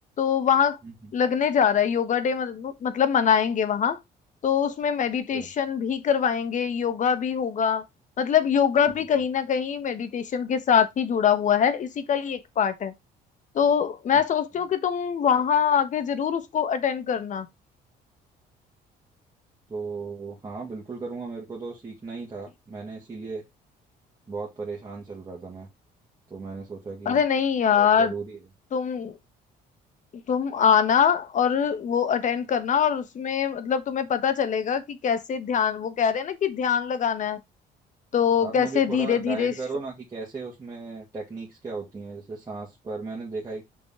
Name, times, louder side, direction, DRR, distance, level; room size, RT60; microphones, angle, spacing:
voice 1, 0.2-0.8 1.1-4.0 4.4-7.8 8.2-12.9 13.5-17.5 27.0-28.1 28.7-29.1 30.3-37.4 38.1-39.5, left 7 dB, 45° left, 1.3 m, -23 dB
voice 2, 19.7-23.4 24.3-25.7 26.3-27.2 27.7-28.4 38.4-43.6, right 4 dB, 20° right, 2.4 m, -36 dB
6.1 x 5.2 x 3.7 m
cardioid pair, 110°, 17 cm